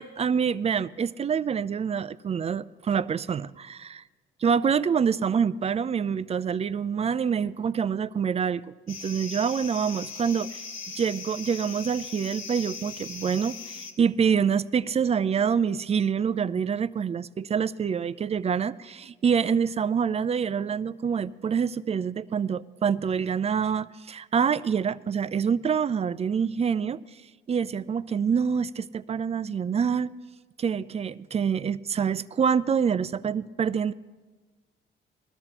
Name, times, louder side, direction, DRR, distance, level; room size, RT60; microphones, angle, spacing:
voice 1, 0.0-4.0 4.4-10.6 11.0-27.0 27.5-30.1 30.6-33.9, right 7 dB, 30° right, 16 dB, 0.4 m, -26 dB
sound 1, 8.9-13.9, left 5 dB, 90° left, 1.3 m, -39 dB
21.0 x 13.0 x 2.9 m, 1.3 s
cardioid pair, 90°, 20 cm